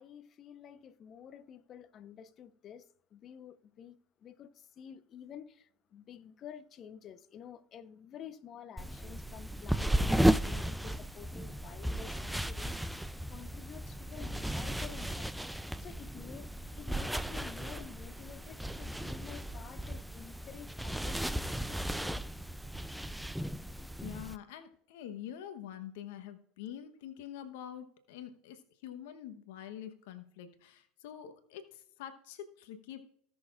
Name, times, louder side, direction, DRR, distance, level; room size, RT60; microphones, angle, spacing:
voice 1, 0.0-15.3 15.8-22.2, left 8 dB, 40° left, 0.8 m, -50 dB
sound 1, 8.8-24.4, right 1 dB, ahead, 0.4 m, -35 dB
voice 2, 24.0-33.0, left 10 dB, 70° left, 1.0 m, -46 dB
18.0 x 6.4 x 2.4 m
hypercardioid pair, 85°, 0 cm